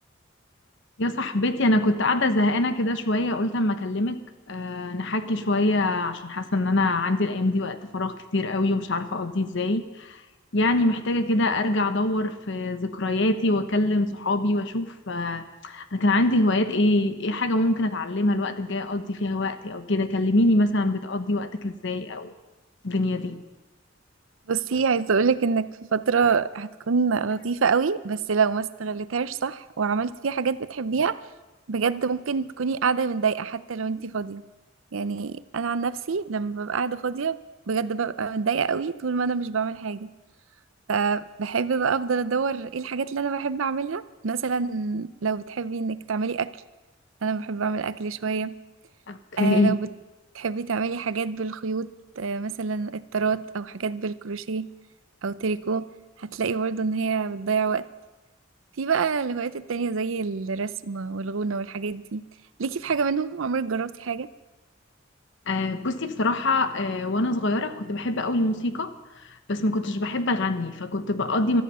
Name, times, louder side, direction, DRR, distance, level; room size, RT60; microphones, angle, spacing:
voice 1, 1.0-4.2 4.5-10.2 10.5-22.3 22.8-23.4 49.1-49.8 65.5-68.9 69.5-71.6, left 2 dB, 65° left, 9 dB, 1.1 m, -24 dB
voice 2, 24.5-31.2 31.7-34.4 34.9-37.4 37.7-40.1 40.9-46.5 47.2-48.5 49.4-49.9 50.3-51.9 52.2-54.7 55.2-55.9 56.2-57.8 58.8-62.2 62.6-64.3, right 5 dB, 80° right, 15 dB, 0.6 m, -26 dB
16.5 x 13.5 x 5.6 m, 1.1 s
head